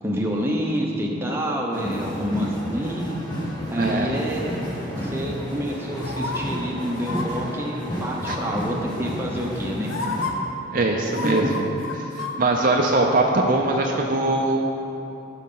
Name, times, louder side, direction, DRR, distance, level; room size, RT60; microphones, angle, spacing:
voice 1, 0.0-3.2 3.7-4.4 5.0-9.9 11.2-11.4, equal, 10° right, -2 dB, 0.8 m, -28 dB
sound 1, 1.7-10.3, equal, 20° left, 1.4 m, -31 dB
voice 2, 3.7-4.1 8.3-8.4 10.7-11.7 12.2-14.6, right 2 dB, 40° right, 1 dB, 0.5 m, -21 dB
sound 2, 6.0-6.4 7.0-7.3 8.2-8.6 9.4-9.5 9.9-10.3 11.1-12.3 12.7-12.8, left 4 dB, 80° left, 0.8 m, -30 dB
15.0 x 5.4 x 3.8 m, 3.0 s
head